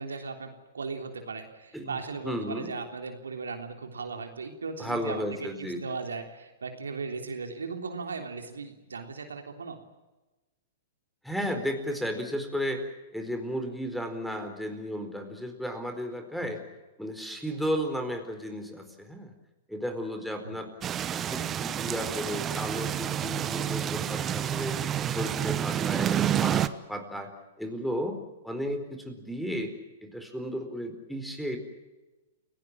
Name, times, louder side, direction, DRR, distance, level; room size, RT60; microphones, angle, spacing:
voice 1, 0.0-9.8 16.4-16.5 20.4-20.6 26.2-26.4, right 4 dB, 80° right, 5 dB, 3.4 m, -37 dB
voice 2, 2.2-2.7 4.8-5.8 11.2-12.8 13.1-16.6 17.0-19.3 19.7-20.7 21.1-27.3 27.6-29.7 30.0-31.6, equal, ahead, 7 dB, 4.4 m, -34 dB
sound 1, 20.8-26.7, right 10 dB, 25° right, 1.1 m, -29 dB
29.5 x 18.0 x 7.5 m, 1.1 s
hypercardioid pair, 110°, 0 cm